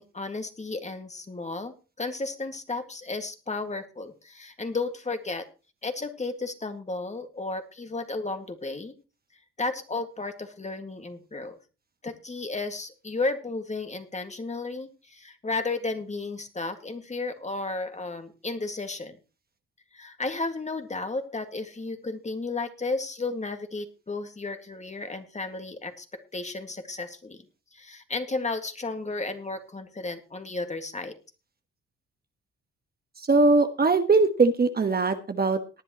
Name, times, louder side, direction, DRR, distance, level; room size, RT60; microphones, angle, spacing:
voice 1, 0.0-5.5 5.8-9.0 9.6-11.6 12.0-19.2 19.9-26.1 26.3-27.4 27.7-31.2, left 3 dB, 25° left, 6 dB, 2.0 m, -33 dB
voice 2, 33.3-35.8, right 3 dB, 30° right, 7 dB, 1.4 m, -21 dB
19.0 x 10.0 x 3.0 m, 0.32 s
cardioid pair, 90°, 30 cm